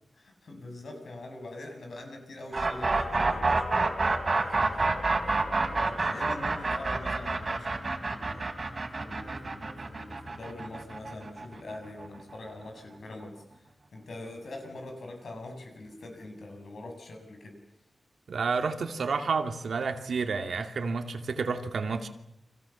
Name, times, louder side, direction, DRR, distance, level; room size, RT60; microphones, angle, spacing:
voice 1, 0.1-8.5 9.0-13.4 13.9-17.5, left 2 dB, 65° left, 4 dB, 7.3 m, -43 dB
sound 1, 2.5-12.4, right 3 dB, 35° right, 3.7 m, -28 dB
voice 2, 18.3-22.1, right 4 dB, 75° right, 6 dB, 2.5 m, -30 dB
30.0 x 25.0 x 7.3 m, 0.82 s
wide cardioid pair, 155°, 0 cm